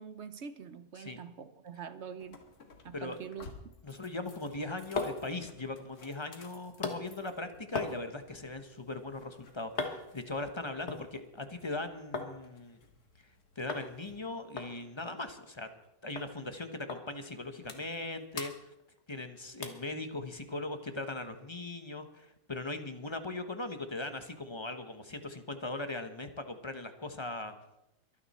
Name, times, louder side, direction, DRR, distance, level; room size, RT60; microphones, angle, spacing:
voice 1, 0.0-2.4 2.8-3.5, right 7 dB, 55° right, 12 dB, 0.9 m, -44 dB
sound 1, 2.2-14.3, left 3 dB, 85° left, 2.2 m, -58 dB
voice 2, 2.9-3.3 3.8-12.8 13.6-15.7 16.0-18.7 19.1-27.5, left 2 dB, 20° left, 8 dB, 0.9 m, -39 dB
sound 2, 4.7-12.3 12.6-13.3 13.7-13.9 14.2-14.3 14.6-15.9 16.2-16.3 16.9-17.0 17.4-18.1 18.3-19.2 19.6-19.9 20.4-20.5, left 4 dB, 50° left, 1.7 m, -41 dB
23.5 x 9.3 x 4.2 m, 0.88 s
omnidirectional pair, 1.6 m